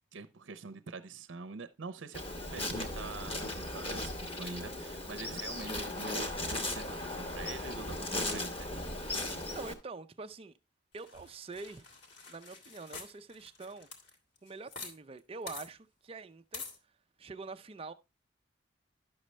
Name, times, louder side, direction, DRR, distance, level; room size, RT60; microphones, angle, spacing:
voice 1, 0.1-8.7, right 4 dB, 80° right, 0.6 m, -45 dB
Insect, 2.1-9.7, left 1 dB, 30° left, 1.2 m, -37 dB
voice 2, 9.5-10.5 10.9-11.9 12.3-13.9 14.4-16.6 17.2-17.9, right 3 dB, 30° right, 0.5 m, -45 dB
sound 1, 11.0-14.9 15.2-15.3 15.5-15.7 16.5-16.8, left 4 dB, 60° left, 2.0 m, -47 dB
11.0 x 6.3 x 3.1 m
head